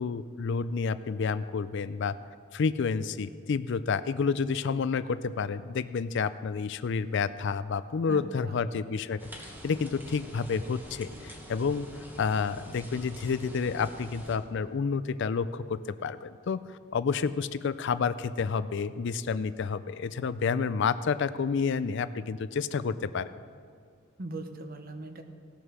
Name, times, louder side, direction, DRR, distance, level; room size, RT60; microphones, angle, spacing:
voice 1, 0.0-2.2 2.5-11.9 12.2-16.6 16.9-23.3, left 5 dB, 60° left, 14 dB, 0.4 m, -30 dB
voice 2, 8.1-8.6 24.2-25.2, right 2 dB, 45° right, 7 dB, 1.0 m, -40 dB
sound 1, 9.2-14.4, equal, 10° right, 1.3 m, -46 dB
17.5 x 6.4 x 6.1 m, 2.4 s
head